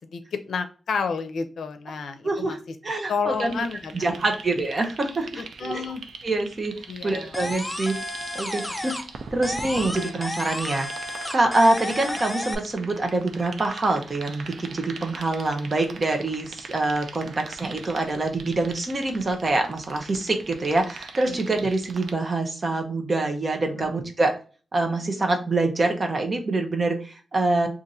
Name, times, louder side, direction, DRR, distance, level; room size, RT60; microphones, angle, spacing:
voice 1, 0.0-2.6 3.1-4.1 5.4-6.0 6.9-7.3 8.8-8.9 21.3-21.4 23.8-23.9, left 5 dB, 85° left, 8 dB, 0.5 m, -31 dB
voice 2, 2.2-2.6 2.8-3.6 3.9-5.9 6.2-8.0 8.3-8.9 9.3-10.9 11.3-24.4 24.7-27.7, right 2 dB, 35° right, 4 dB, 0.7 m, -25 dB
sound 1, 3.3-22.1, right 4 dB, 80° right, 0.4 m, -42 dB
sound 2, 7.3-9.2 9.4-12.5, left 1 dB, 10° left, 0.4 m, -32 dB
2.6 x 2.5 x 4.1 m, 0.36 s
wide cardioid pair, 160°, 0 cm